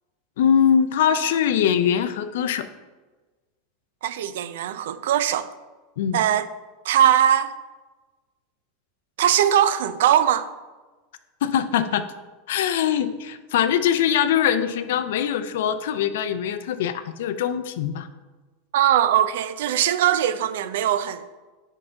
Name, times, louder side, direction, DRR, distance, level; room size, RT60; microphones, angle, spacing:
voice 1, 0.4-2.7 6.0-6.2 11.4-12.0 12.5-18.1, left 8 dB, 75° left, 11 dB, 0.5 m, -22 dB
voice 2, 4.0-5.5 6.1-6.5 6.8-7.5 9.2-10.5 18.7-21.2, right 10 dB, 80° right, 14 dB, 0.4 m, -20 dB
4.9 x 4.3 x 5.7 m, 1.3 s
supercardioid pair, 115°, 0 cm